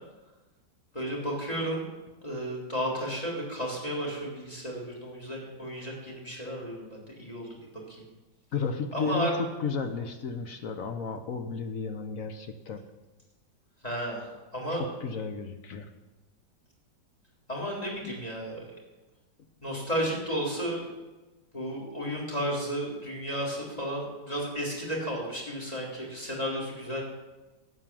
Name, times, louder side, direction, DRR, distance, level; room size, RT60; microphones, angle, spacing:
voice 1, 0.9-1.8 2.2-7.5 7.9-8.0 8.9-9.3 13.8-14.8 17.5-18.6 19.6-20.8 21.5-27.0, equal, 20° left, -2 dB, 3.7 m, -33 dB
voice 2, 8.5-12.8 14.7-15.9, left 5 dB, 55° left, 7 dB, 1.2 m, -33 dB
12.0 x 8.6 x 7.5 m, 1.1 s
omnidirectional pair, 2.0 m